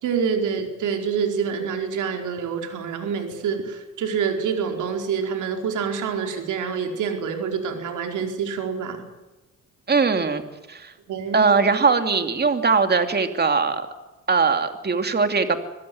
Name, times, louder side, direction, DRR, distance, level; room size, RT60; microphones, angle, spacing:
voice 1, 0.0-9.0 11.1-11.5, right 6 dB, 80° right, 4 dB, 4.7 m, -26 dB
voice 2, 9.9-10.4 10.7-10.9 11.3-13.9 14.3-15.6, right 4 dB, 35° right, 7 dB, 2.8 m, -20 dB
25.5 x 16.5 x 9.6 m, 1.1 s
cardioid pair, 90°, 30 cm